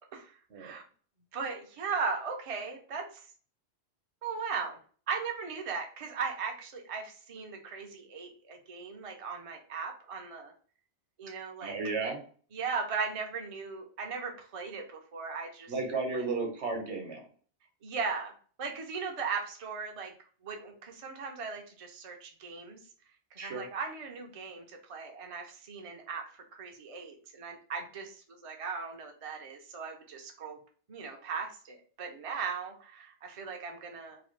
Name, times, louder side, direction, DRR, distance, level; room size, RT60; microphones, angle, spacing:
voice 1, 0.1-0.8 1.3-3.1 4.2-4.8 5.1-10.5 11.2-11.7 12.5-15.7 16.1-16.2 17.8-18.3 18.6-20.1 20.4-22.8 23.4-30.6 30.9-34.2, right 5 dB, 45° right, 3 dB, 0.4 m, -38 dB
voice 2, 11.6-12.2 15.7-17.2 23.4-23.7, right 4 dB, 70° right, 2 dB, 1.1 m, -33 dB
2.9 x 2.3 x 3.1 m, 0.43 s
omnidirectional pair, 1.2 m